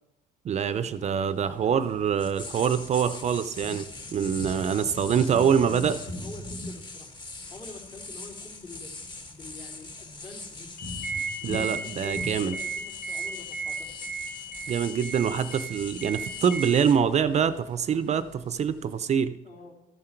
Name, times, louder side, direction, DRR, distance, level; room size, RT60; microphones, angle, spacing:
voice 1, 0.4-6.0 11.4-12.6 14.7-19.4, right 7 dB, 40° right, 13 dB, 0.5 m, -25 dB
sound 1, 0.6-19.0, left 2 dB, 25° left, 1.5 m, -41 dB
voice 2, 1.4-2.0 4.6-4.9 5.2-7.1 7.5-8.9 9.3-10.7 11.4-13.9 19.4-19.7, left 3 dB, 55° left, -1 dB, 3.6 m, -45 dB
sound 2, 10.8-16.7, right 3 dB, 75° left, 1.5 m, -35 dB
13.5 x 7.7 x 4.5 m, 0.93 s
cardioid pair, 110°, 17 cm